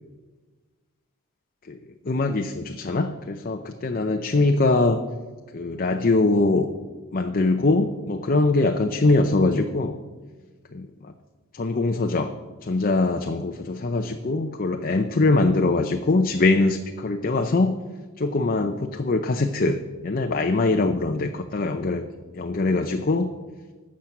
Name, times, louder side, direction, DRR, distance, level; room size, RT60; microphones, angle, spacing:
voice 1, 2.1-5.0 5.5-6.7 7.1-10.0 10.7-11.1 11.5-12.3 12.6-17.8 18.2-22.0 22.3-23.3, left 2 dB, 45° left, 5 dB, 0.6 m, -22 dB
12.5 x 7.4 x 5.8 m, 1.3 s
head